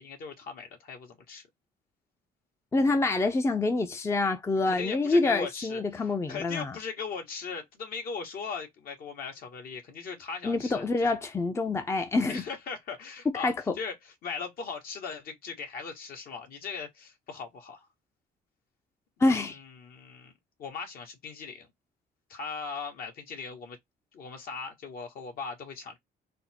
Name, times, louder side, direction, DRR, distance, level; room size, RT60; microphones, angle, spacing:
voice 1, 0.0-1.4 4.7-11.1 12.3-17.9 19.3-20.3 20.6-21.7 22.3-23.8 24.1-26.0, left 5 dB, 60° left, 1.5 m, -39 dB
voice 2, 2.7-6.7 10.4-12.4 13.4-13.7 19.2-19.6, left 3 dB, 15° left, 0.6 m, -26 dB
4.2 x 2.0 x 4.2 m
cardioid pair, 110°, 17 cm